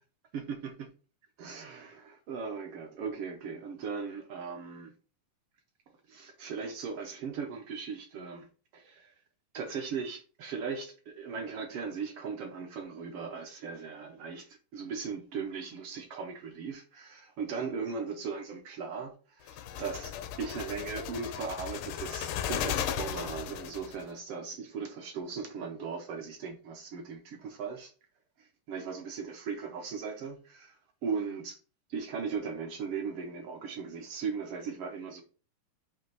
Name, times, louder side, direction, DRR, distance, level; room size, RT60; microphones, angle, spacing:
voice 1, 0.3-0.9 1.4-4.9 6.1-8.5 8.7-9.1 9.5-20.1 20.4-27.9 28.4-31.6 31.9-35.2, right 5 dB, 70° right, 1.3 m, -38 dB
sound 1, 19.5-24.0, left 9 dB, 85° left, 2.2 m, -36 dB
7.7 x 2.9 x 5.4 m
omnidirectional pair, 3.7 m